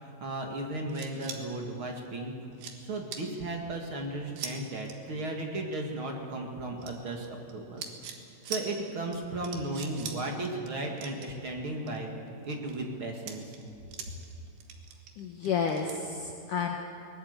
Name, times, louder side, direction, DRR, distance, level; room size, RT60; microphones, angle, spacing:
voice 1, 0.0-2.3 2.8-7.8 8.5-12.1 12.4-13.4, right 2 dB, 40° right, 1 dB, 2.3 m, -35 dB
sound 1, 0.9-1.4 2.1-2.2 2.5-2.8 3.1-3.2 4.3-4.5 4.8-4.9 6.8-7.5 7.8-8.2 8.4-8.6 9.1-9.2 9.4-10.2 10.4-10.7 11.0-12.0 12.4-12.8 13.2-14.3 14.6-16.0, right 7 dB, 80° right, 3.7 m, -41 dB
voice 2, 15.2-16.8, left 6 dB, 65° left, 1 dB, 2.5 m, -31 dB
21.5 x 19.5 x 8.2 m, 2.7 s
omnidirectional pair, 4.7 m